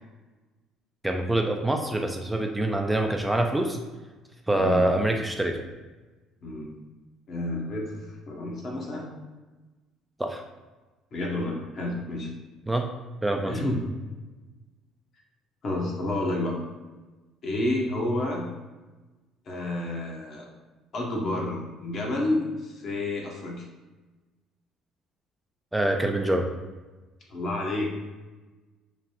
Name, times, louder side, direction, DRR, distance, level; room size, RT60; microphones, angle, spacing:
voice 1, 1.0-3.8 4.5-5.6 10.2-10.4 12.7-12.9 13.2-13.5 25.7-26.5, right 1 dB, 10° right, 3 dB, 0.3 m, -25 dB
voice 2, 4.5-4.9 6.4-6.7 7.3-9.1 11.1-12.3 13.5-13.8 15.6-16.6 17.4-18.4 19.5-20.5 20.9-23.6 27.3-27.9, left 1 dB, 55° left, -2 dB, 0.8 m, -30 dB
3.1 x 2.2 x 2.9 m, 1.2 s
hypercardioid pair, 60°, 0 cm